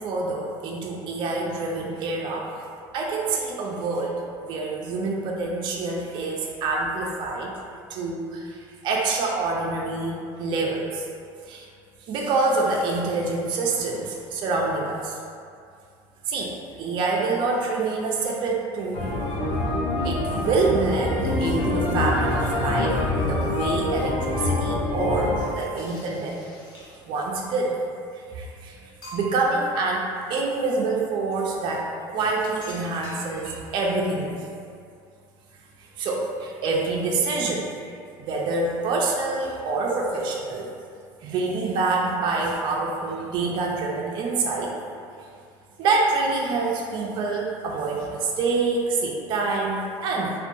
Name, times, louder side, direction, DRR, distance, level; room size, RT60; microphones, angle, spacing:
voice 1, 0.0-2.5 2.9-7.5 7.9-11.0 11.5-11.6 12.1-15.2 16.3-16.5 16.8-19.1 20.0-26.4 27.1-27.8 28.1-28.8 29.1-34.5 36.0-37.7 38.3-40.7 41.2-44.7 45.8-50.3, right 3 dB, 50° right, -2 dB, 0.4 m, -26 dB
sound 1, 18.9-25.4, left 2 dB, 70° left, 0.5 m, -25 dB
sound 2, 25.7-27.2 28.1-28.2 28.6-28.7 29.0-29.6 31.3-31.6 32.6-33.8, equal, 40° left, 0.9 m, -44 dB
2.6 x 2.2 x 2.5 m, 2.3 s
supercardioid pair, 120°, 11 cm